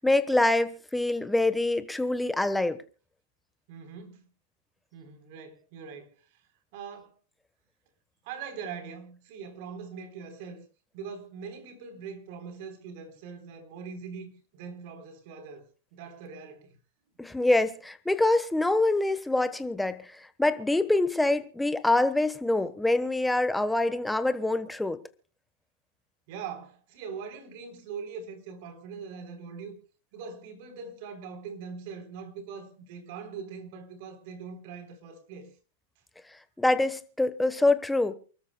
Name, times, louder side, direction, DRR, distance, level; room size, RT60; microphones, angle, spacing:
voice 1, 0.0-2.8 17.2-20.0 20.4-25.0 36.6-38.1, left 2 dB, 5° left, 1.2 m, -25 dB
voice 2, 3.7-4.2 4.9-6.1 6.7-7.1 8.2-10.6 10.9-16.7 26.3-29.8 30.1-35.5, right 6 dB, 60° right, 3.8 m, -42 dB
29.0 x 13.5 x 2.3 m
hypercardioid pair, 115°, 0 cm